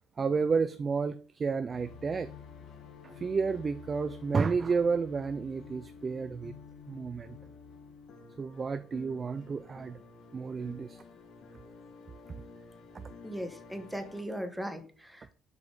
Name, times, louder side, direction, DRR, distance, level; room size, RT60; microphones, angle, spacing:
voice 1, 0.2-2.3 3.0-6.6 6.9-7.4 8.4-10.0 10.3-11.0 12.9-13.0, right 5 dB, 30° right, 12 dB, 0.4 m, -31 dB
sound 1, 1.7-14.2, left 5 dB, 55° left, 1.7 m, -50 dB
voice 2, 13.2-15.3, equal, 5° right, 7 dB, 1.2 m, -38 dB
6.8 x 5.0 x 5.0 m, 0.42 s
cardioid pair, 110°, 0 cm